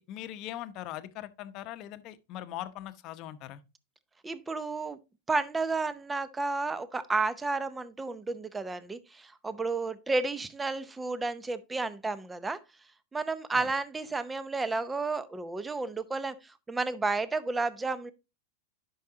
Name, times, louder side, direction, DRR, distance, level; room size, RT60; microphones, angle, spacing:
voice 1, 0.0-3.6 13.5-13.7, left 13 dB, 50° left, 0.8 m, -41 dB
voice 2, 4.2-5.0 5.3-12.6 13.1-18.1, right 3 dB, 15° right, 0.7 m, -32 dB
10.5 x 5.6 x 2.8 m
hypercardioid pair, 110°, 0 cm